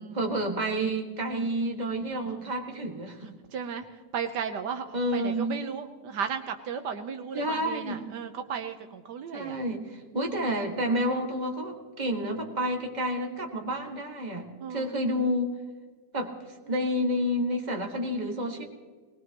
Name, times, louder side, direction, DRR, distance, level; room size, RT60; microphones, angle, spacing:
voice 1, 0.1-3.3 4.9-5.6 7.3-8.1 9.3-15.5 16.1-18.7, equal, 25° right, 1 dB, 2.0 m, -30 dB
voice 2, 3.2-9.6 10.1-10.5 13.3-13.4 14.6-15.0, right 7 dB, 75° right, 6 dB, 1.5 m, -36 dB
21.5 x 20.0 x 3.0 m, 1.4 s
omnidirectional pair, 1.8 m